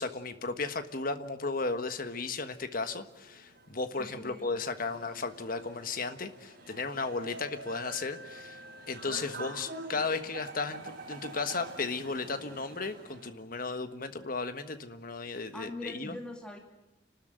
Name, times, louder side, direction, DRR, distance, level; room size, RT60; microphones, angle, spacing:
voice 1, 0.0-16.1, left 4 dB, 50° left, 9 dB, 1.4 m, -35 dB
sound 1, 3.0-13.3, right 2 dB, 50° right, 5.0 m, -46 dB
voice 2, 4.0-4.5 15.5-16.6, left 1 dB, 5° left, 1 dB, 2.5 m, -42 dB
29.0 x 13.0 x 9.2 m, 0.97 s
head